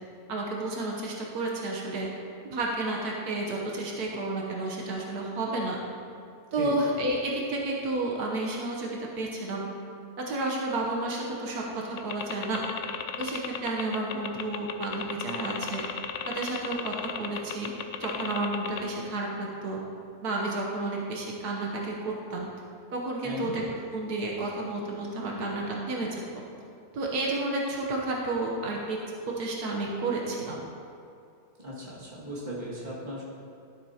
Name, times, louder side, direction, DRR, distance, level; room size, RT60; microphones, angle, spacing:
voice 1, 0.3-2.1 2.5-5.8 6.5-9.7 10.2-12.6 13.2-15.8 16.2-17.7 18.0-19.8 20.2-22.5 22.9-23.6 23.9-26.2 26.9-29.0 29.2-30.7, right 2 dB, 80° right, -2 dB, 1.5 m, -31 dB
sound 1, 12.0-18.8, left 8 dB, 65° left, 0.8 m, -34 dB
voice 2, 23.2-23.6 31.6-33.2, equal, 30° right, -7 dB, 2.1 m, -36 dB
12.5 x 7.3 x 2.8 m, 2.5 s
omnidirectional pair, 1.6 m